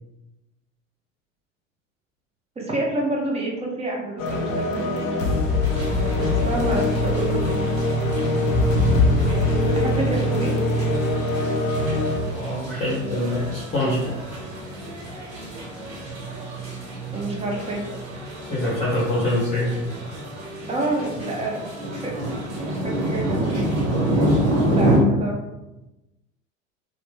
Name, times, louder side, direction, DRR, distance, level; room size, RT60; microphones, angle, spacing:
voice 1, 2.6-5.1 6.2-7.7 9.6-10.6 17.1-17.8 20.7-21.7 22.0-22.2 22.8-23.4 24.7-25.4, right 2 dB, 15° right, -1 dB, 0.7 m, -28 dB
sound 1, 4.2-12.2, left 2 dB, 80° left, 0.5 m, -22 dB
sound 2, 5.6-25.0, right 1 dB, 45° right, 1.3 m, -29 dB
voice 2, 12.0-14.2 18.5-19.8, left 1 dB, 15° left, -7 dB, 0.9 m, -25 dB
3.1 x 2.0 x 3.1 m, 0.97 s
figure-of-eight pair, 75°, 39 cm